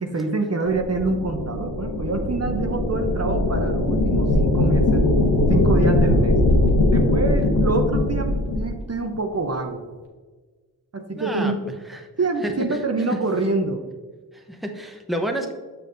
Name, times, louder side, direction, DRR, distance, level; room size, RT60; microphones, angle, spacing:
voice 1, 0.0-5.1 5.5-6.4 6.9-8.3 8.6-9.8 10.9-11.6 12.2-13.8, right 3 dB, 40° right, 4 dB, 0.7 m, -26 dB
sound 1, 0.7-8.7, left 1 dB, 85° left, 1.3 m, -20 dB
voice 2, 11.2-11.5 11.9-12.1 12.4-12.8 13.1-13.2 14.3-15.5, right 1 dB, ahead, 4 dB, 0.8 m, -29 dB
7.0 x 6.7 x 2.6 m, 1.4 s
cardioid pair, 55°, 39 cm